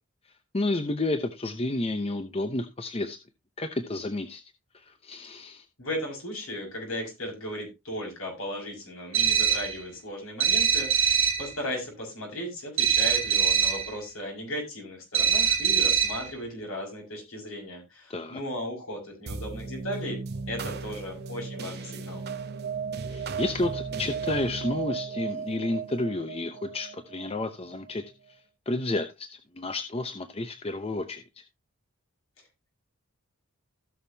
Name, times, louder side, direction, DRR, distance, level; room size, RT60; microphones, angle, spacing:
voice 1, 0.5-3.2 3.6-4.4 4.7-5.7 18.1-18.4 23.1-28.0 28.3-28.4 28.7-29.3 29.5-31.4, left 2 dB, 25° left, 8 dB, 0.8 m, -31 dB
voice 2, 5.8-20.2 20.5-22.2, left 1 dB, 70° left, 0 dB, 6.3 m, -36 dB
sound 1, 9.1-9.8 10.4-11.5 12.8-13.9 15.1-16.3, right 8 dB, 65° right, 2.9 m, -23 dB
sound 2, 19.3-28.0, right 5 dB, 50° right, 0.8 m, -35 dB
16.0 x 6.6 x 2.8 m, 0.23 s
head